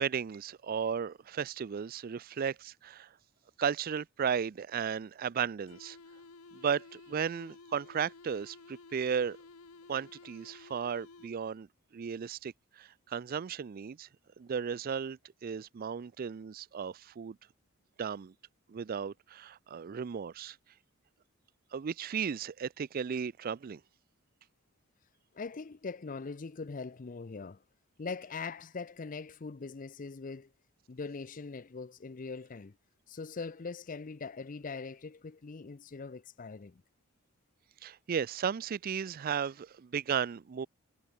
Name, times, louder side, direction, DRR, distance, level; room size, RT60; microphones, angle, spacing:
voice 1, 0.0-3.1 3.6-6.0 6.5-9.4 9.9-11.7 11.9-14.1 14.4-17.4 18.0-18.3 18.7-20.6 21.7-23.8 37.8-40.7, right 7 dB, 40° right, 0.4 m, -35 dB
sound 1, 5.7-11.6, left 3 dB, 90° left, 1.2 m, -54 dB
voice 2, 25.3-27.6 28.0-30.5 30.9-32.8 33.1-36.8, left 4 dB, 40° left, 0.5 m, -41 dB
head